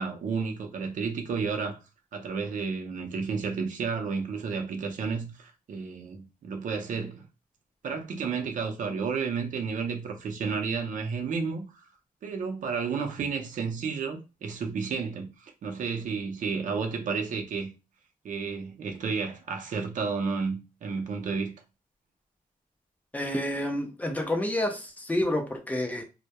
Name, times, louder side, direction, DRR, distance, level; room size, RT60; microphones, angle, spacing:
voice 1, 0.0-1.8 2.1-7.2 7.8-11.9 12.2-17.7 18.2-21.5, right 5 dB, 60° right, 0.6 m, -32 dB
voice 2, 23.1-26.0, left 1 dB, 10° left, 0.4 m, -29 dB
2.2 x 2.1 x 2.8 m
wide cardioid pair, 145°, 15 cm